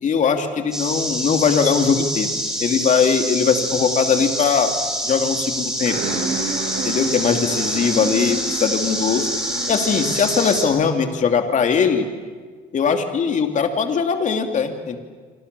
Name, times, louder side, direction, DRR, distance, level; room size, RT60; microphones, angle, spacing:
voice 1, 0.0-2.3 2.6-4.7 5.0-6.0 6.8-9.3 9.7-12.1 12.7-15.0, left 6 dB, 45° left, 6 dB, 2.9 m, -20 dB
sound 1, 0.7-10.6, equal, 5° right, 7.3 m, -26 dB
sound 2, 5.9-10.8, right 4 dB, 80° right, 6.4 m, -31 dB
27.0 x 26.0 x 7.0 m, 1.5 s
cardioid pair, 110°, 17 cm